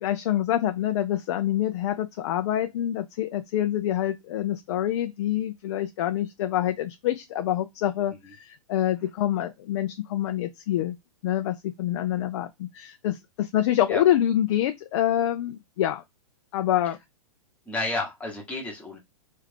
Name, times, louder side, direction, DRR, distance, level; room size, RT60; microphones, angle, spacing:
voice 1, 0.0-11.0 11.2-16.0 16.5-17.0, left 12 dB, 50° left, 0.4 m, -26 dB
voice 2, 17.7-19.0, left 2 dB, 5° left, 1.0 m, -31 dB
3.2 x 2.4 x 3.3 m
hypercardioid pair, 125°, 19 cm